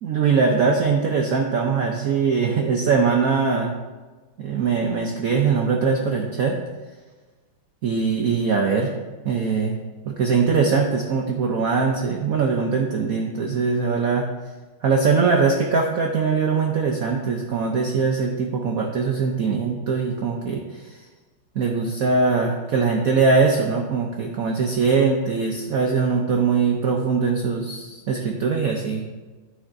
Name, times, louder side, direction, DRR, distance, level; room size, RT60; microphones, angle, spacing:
voice 1, 0.0-3.7 4.4-6.6 7.8-8.9 9.2-9.7 10.0-14.2 14.8-20.6 20.9-21.0 21.5-29.0, right 5 dB, 70° right, 1 dB, 0.8 m, -21 dB
9.7 x 8.5 x 2.6 m, 1.3 s
omnidirectional pair, 2.4 m